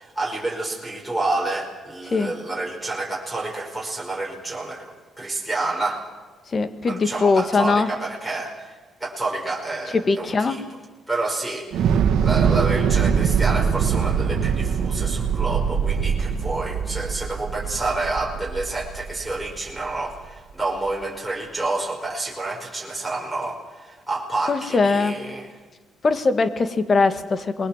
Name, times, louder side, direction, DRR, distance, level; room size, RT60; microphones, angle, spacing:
voice 1, 0.0-6.0 6.8-10.6 11.1-25.5, right 2 dB, 5° right, -4 dB, 5.7 m, -29 dB
voice 2, 6.5-7.9 9.9-10.6 24.5-25.2 26.0-27.7, left 4 dB, 40° left, 10 dB, 2.0 m, -21 dB
Thunder / Explosion, 11.7-19.9, right 7 dB, 80° right, 1.6 m, -23 dB
27.0 x 21.5 x 7.6 m, 1.3 s
cardioid pair, 90°, 0 cm